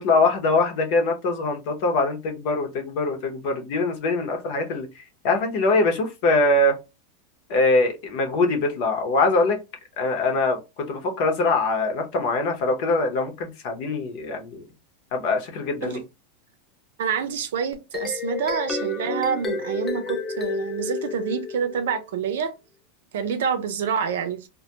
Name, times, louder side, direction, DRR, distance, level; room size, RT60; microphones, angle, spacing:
voice 1, 0.0-4.9 5.2-6.8 7.5-9.6 10.0-10.6 10.9-14.6 15.1-16.0, left 2 dB, 50° left, 0.7 m, -23 dB
voice 2, 17.0-22.5 23.1-24.5, right 7 dB, 80° right, 0.6 m, -27 dB
sound 1, 17.7-22.1, left 4 dB, 15° left, 0.3 m, -31 dB
2.2 x 2.1 x 2.8 m
supercardioid pair, 150°, 0 cm